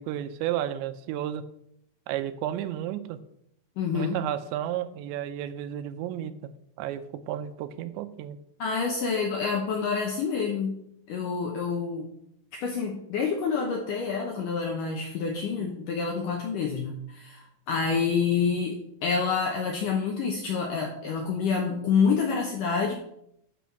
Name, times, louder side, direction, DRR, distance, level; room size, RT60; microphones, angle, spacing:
voice 1, 0.0-1.4 2.1-3.2 3.9-6.5 6.8-8.4, right 11 dB, 85° right, 12 dB, 3.0 m, -32 dB
voice 2, 3.8-4.2 8.6-10.8 11.1-12.1 12.5-22.9, left 5 dB, 75° left, 2 dB, 1.9 m, -27 dB
10.0 x 5.5 x 6.4 m, 0.75 s
omnidirectional pair, 5.1 m